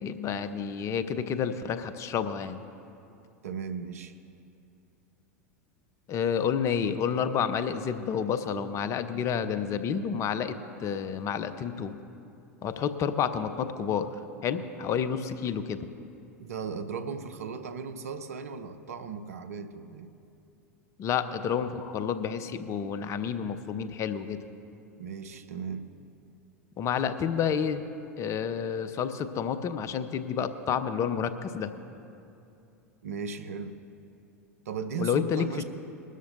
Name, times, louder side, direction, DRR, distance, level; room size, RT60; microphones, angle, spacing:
voice 1, 0.0-2.6 6.1-12.0 12.6-14.1 14.4-15.9 21.0-24.4 26.8-27.8 28.2-31.7 35.0-35.6, left 7 dB, 40° left, 11 dB, 0.8 m, -30 dB
voice 2, 3.4-4.2 16.4-20.1 25.0-25.9 33.0-33.8 34.7-35.6, right 6 dB, 75° right, 10 dB, 0.8 m, -36 dB
21.0 x 12.5 x 2.7 m, 2.7 s
hypercardioid pair, 85°, 8 cm